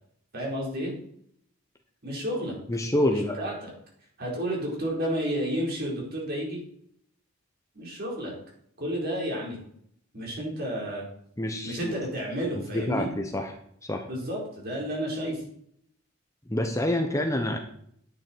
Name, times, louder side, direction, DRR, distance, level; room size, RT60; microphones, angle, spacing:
voice 1, 0.3-0.9 2.0-2.5 3.1-3.7 4.2-6.6 7.7-8.3 8.8-9.6 10.1-11.0 11.6-13.1 14.1-15.4, equal, 50° right, -2 dB, 4.5 m, -31 dB
voice 2, 2.7-3.4 11.4-11.9 12.7-13.6 13.9-14.0 16.5-17.6, left 1 dB, 15° left, 4 dB, 1.0 m, -27 dB
11.0 x 9.3 x 4.6 m, 0.68 s
head